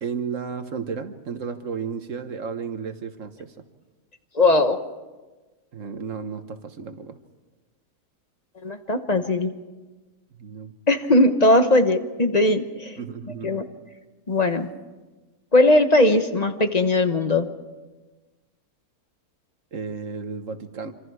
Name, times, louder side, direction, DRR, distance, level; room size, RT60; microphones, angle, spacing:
voice 1, 0.0-3.5 5.7-7.2 10.4-10.7 13.0-13.6 19.7-20.9, right 6 dB, 55° right, 8 dB, 1.5 m, -33 dB
voice 2, 4.3-4.8 8.6-9.5 10.9-13.0 13.4-13.6 14.3-14.7 15.5-17.5, left 2 dB, 30° left, 7 dB, 1.0 m, -19 dB
26.5 x 26.0 x 4.8 m, 1.2 s
omnidirectional pair, 1.7 m